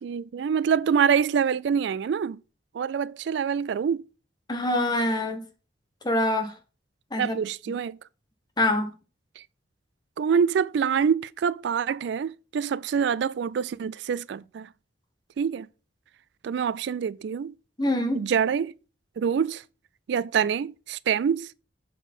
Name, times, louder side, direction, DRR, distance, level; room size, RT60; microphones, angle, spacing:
voice 1, 0.0-2.4 2.7-4.0 7.2-8.0 9.4-9.5 10.2-14.7 15.4-15.7 16.4-17.5 18.1-18.7 19.2-19.6 20.1-21.5, right 7 dB, 65° right, 0.3 m, -25 dB
voice 2, 4.5-5.4 6.0-6.5 7.1-7.4 8.6-8.9 17.8-18.2, left 1 dB, 20° left, 1.1 m, -25 dB
7.2 x 4.1 x 5.4 m
head